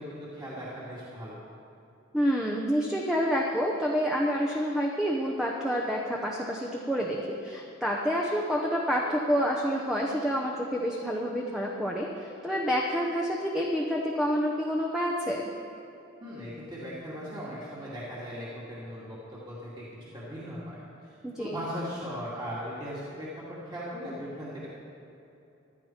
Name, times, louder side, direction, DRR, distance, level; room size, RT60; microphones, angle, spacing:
voice 1, 0.0-1.4 16.2-24.7, equal, 20° right, -7 dB, 2.2 m, -38 dB
voice 2, 2.1-15.5 21.2-21.5, equal, 5° right, -2 dB, 0.9 m, -28 dB
15.5 x 12.0 x 4.5 m, 2.8 s
head